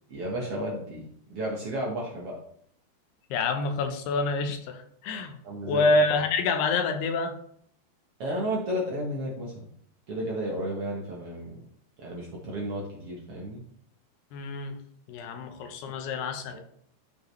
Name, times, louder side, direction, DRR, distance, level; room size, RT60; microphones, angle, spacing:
voice 1, 0.1-1.0 1.3-2.3 5.4-5.9 8.2-9.7 10.1-11.6 12.0-13.6 16.1-16.2 16.5-16.6, equal, 70° right, -3 dB, 1.3 m, -32 dB
voice 2, 3.3-5.4 5.7-7.4 14.3-14.8 15.1-16.6, left 3 dB, 75° left, 6 dB, 2.9 m, -27 dB
13.5 x 5.4 x 3.2 m, 0.67 s
omnidirectional pair, 4.8 m